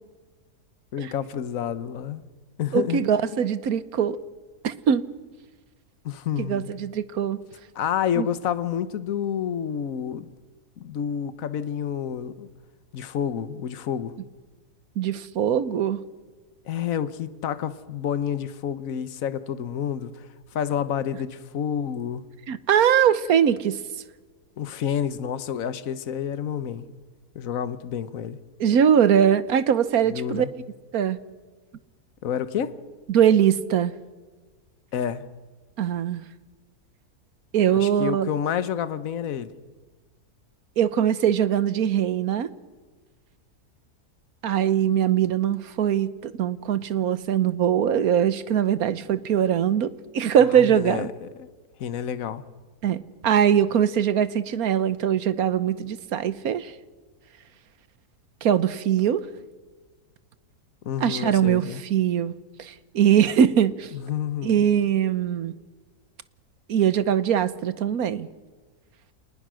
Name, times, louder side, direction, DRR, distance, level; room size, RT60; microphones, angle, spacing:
voice 1, 0.9-2.2 2.6-3.0 3.3-3.4 6.0-6.7 7.7-10.3 10.8-12.5 12.9-14.1 16.6-22.2 24.6-26.8 27.3-28.4 30.1-30.5 32.2-32.8 34.9-35.2 37.7-39.5 50.4-51.5 51.8-52.4 60.8-61.8 63.9-64.7, left 9 dB, 60° left, 1.4 m, -29 dB
voice 2, 2.7-4.2 4.6-5.0 6.4-7.4 8.2-8.3 15.0-16.0 22.5-23.8 28.6-30.4 30.9-31.2 33.1-33.9 35.8-36.2 37.5-38.3 40.8-42.5 44.4-51.1 52.8-56.7 58.4-59.3 61.0-62.3 62.6-63.9 64.4-65.5 66.7-68.3, right 9 dB, 65° right, 1.3 m, -22 dB
27.0 x 20.0 x 6.3 m
omnidirectional pair, 1.7 m